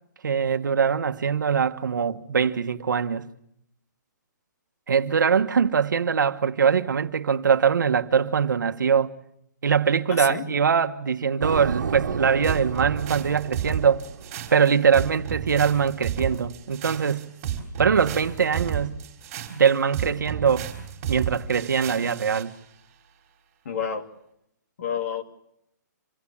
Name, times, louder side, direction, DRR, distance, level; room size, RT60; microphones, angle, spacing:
voice 1, 0.2-3.2 4.9-9.1 9.6-14.0 14.5-17.3 17.8-19.0 19.5-20.7 21.1-22.5, right 6 dB, 90° right, 1.3 m, -22 dB
voice 2, 10.1-10.5 23.6-24.0 24.8-25.2, left 6 dB, 50° left, 2.7 m, -29 dB
sound 1, 11.4-15.1, right 6 dB, 70° right, 1.7 m, -32 dB
sound 2, 12.4-22.5, right 9 dB, 25° right, 4.0 m, -32 dB
27.0 x 18.0 x 8.6 m
hypercardioid pair, 165°, 10 cm